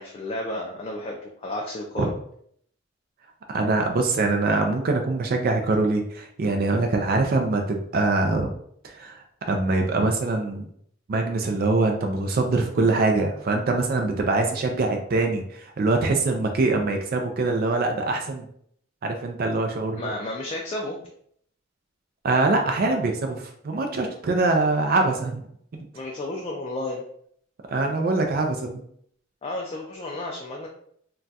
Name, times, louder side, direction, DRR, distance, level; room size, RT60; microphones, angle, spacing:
voice 1, 0.0-2.1 19.9-21.0 25.9-27.0 29.4-30.7, left 1 dB, 30° left, -1 dB, 0.3 m, -32 dB
voice 2, 3.5-8.5 8.8-10.7 11.1-18.4 19.0-20.0 22.2-25.4 27.7-28.8, right 3 dB, 50° right, 3 dB, 0.4 m, -23 dB
2.3 x 2.2 x 3.9 m, 0.65 s
head